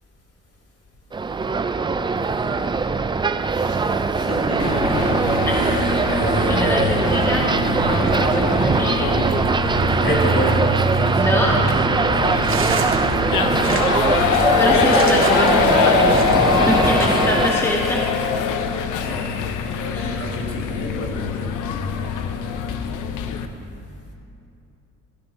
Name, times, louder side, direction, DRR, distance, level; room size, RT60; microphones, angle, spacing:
sound 1, 1.1-17.5, right 4 dB, 15° right, 0.3 m, -21 dB
voice 1, 3.5-5.1 5.5-7.0 10.0-10.6 13.9-14.7 19.0-22.5, left 2 dB, 55° left, -2 dB, 2.8 m, -29 dB
sound 2, 4.6-23.5, left 7 dB, 90° left, 0.7 m, -23 dB
voice 2, 5.5-5.9 6.4-9.2 11.1-11.8 14.6-18.1 19.9-20.2, equal, 10° left, -2 dB, 1.3 m, -24 dB
sound 3, 12.4-16.6 17.0-17.5, right 4 dB, 45° right, 1.7 m, -30 dB
17.0 x 13.0 x 2.7 m, 2.6 s
cardioid pair, 90°, 30 cm